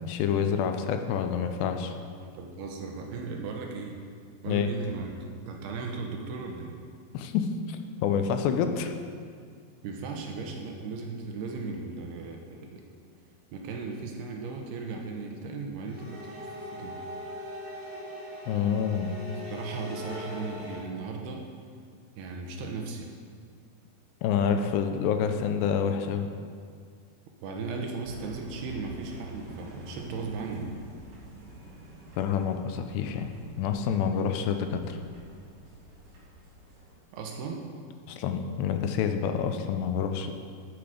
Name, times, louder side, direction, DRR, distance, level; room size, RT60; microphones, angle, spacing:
voice 1, 0.1-1.9 4.5-4.7 7.1-8.9 18.5-19.1 24.2-26.3 32.2-33.3 33.6-35.0 38.1-40.3, left 7 dB, 85° left, 7 dB, 2.8 m, -28 dB
voice 2, 2.3-4.0 4.4-6.8 9.8-12.8 13.5-17.0 19.5-21.5 22.2-23.0 27.4-30.8 37.1-37.7, right 4 dB, 75° right, 2 dB, 2.8 m, -36 dB
sound 1, 15.9-20.8, equal, 5° right, 1.2 m, -40 dB
sound 2, 28.0-37.0, right 1 dB, 50° right, 3.9 m, -47 dB
14.0 x 7.7 x 5.1 m, 2.1 s
omnidirectional pair, 5.0 m